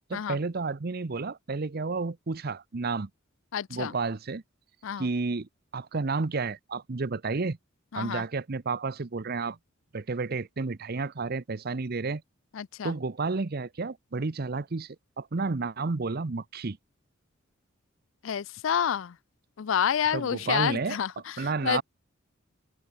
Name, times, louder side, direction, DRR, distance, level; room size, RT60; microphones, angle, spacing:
voice 1, 0.1-3.1 3.7-4.4 5.0-7.6 7.9-9.6 9.9-12.2 12.8-16.8 20.1-21.0 21.4-21.8, right 4 dB, 50° right, 0.7 m, -31 dB
voice 2, 3.5-3.9 4.8-5.1 7.9-8.3 12.5-12.9 18.2-19.2 19.6-21.8, left 8 dB, 70° left, 0.4 m, -29 dB
head